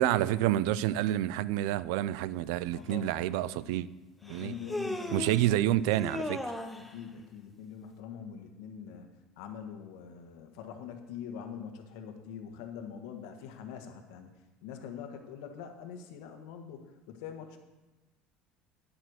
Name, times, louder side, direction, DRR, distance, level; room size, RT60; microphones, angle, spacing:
voice 1, 0.0-3.9 4.3-4.5 5.1-6.5, right 13 dB, 85° right, 18 dB, 0.4 m, -28 dB
voice 2, 2.7-3.7 4.2-5.6 6.9-14.3 14.6-17.6, left 7 dB, 90° left, 5 dB, 1.5 m, -44 dB
Human voice, 2.9-3.0 4.3-5.5 5.9-6.9, left 2 dB, ahead, 0.8 m, -36 dB
10.5 x 7.7 x 6.4 m, 1.1 s
cardioid pair, 165°, 2 cm